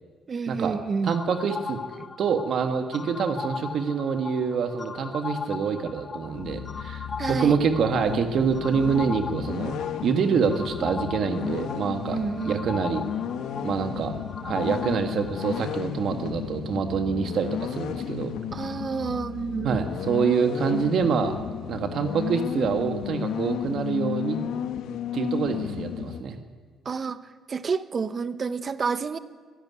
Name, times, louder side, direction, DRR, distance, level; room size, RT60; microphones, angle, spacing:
voice 1, 0.3-1.1 7.2-7.6 12.1-12.7 18.5-19.9 26.8-27.2 27.5-29.2, right 5 dB, 35° right, 13 dB, 0.9 m, -29 dB
voice 2, 1.0-1.8 2.2-9.7 10.0-12.2 12.4-13.0 13.6-14.1 14.4-18.3 19.6-21.3 21.7-24.4 25.1-26.4, right 6 dB, 60° right, 7 dB, 1.6 m, -26 dB
sound 1, 1.1-15.8, left 5 dB, 25° left, 0.7 m, -38 dB
sound 2, 6.3-26.2, left 9 dB, 85° left, 1.1 m, -33 dB
24.0 x 11.5 x 9.6 m, 1.5 s
cardioid pair, 135°, 0 cm